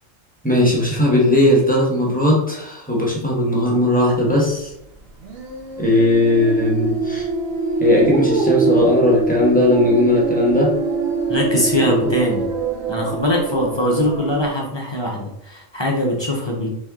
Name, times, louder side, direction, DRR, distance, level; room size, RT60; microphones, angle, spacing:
voice 1, 0.4-4.7 5.8-7.3 7.8-10.7 11.8-11.9, left 1 dB, 5° left, -3 dB, 1.0 m, -17 dB
sound 1, 5.2-14.5, right 3 dB, 55° right, 0.9 m, -23 dB
voice 2, 11.3-12.5 12.9-16.7, left 1 dB, 25° left, -2 dB, 0.6 m, -21 dB
4.2 x 3.1 x 3.6 m, 0.79 s
omnidirectional pair, 1.3 m